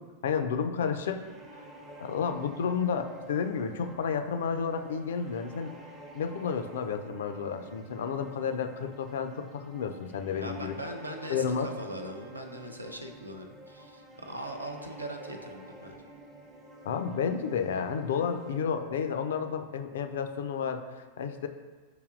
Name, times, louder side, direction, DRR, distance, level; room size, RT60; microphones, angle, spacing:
voice 1, 0.2-1.3 2.0-5.7 6.1-10.7 11.3-11.7 16.8-21.5, left 6 dB, 60° left, 7 dB, 0.3 m, -31 dB
sound 1, 0.9-18.6, right 1 dB, 25° right, 0.5 m, -50 dB
voice 2, 10.4-16.0, right 1 dB, 85° right, 4 dB, 0.4 m, -40 dB
7.6 x 2.8 x 2.4 m, 1.4 s
figure-of-eight pair, 90°, 0 cm